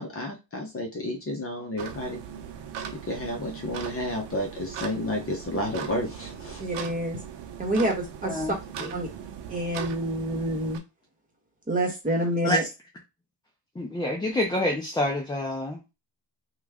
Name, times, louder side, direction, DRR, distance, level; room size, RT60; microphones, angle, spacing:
voice 1, 0.0-2.2 3.1-6.6, left 1 dB, 30° left, 0.9 m, -31 dB
sound 1, 1.8-10.8, right 8 dB, 65° right, 0.8 m, -39 dB
voice 2, 6.6-7.2 7.6-8.6 8.9-9.1 9.5-10.8 11.7-12.6, right 1 dB, 20° right, 1.2 m, -27 dB
voice 3, 13.8-15.8, left 1 dB, 10° left, 0.5 m, -27 dB
3.0 x 2.4 x 3.5 m
cardioid pair, 135°, 45 cm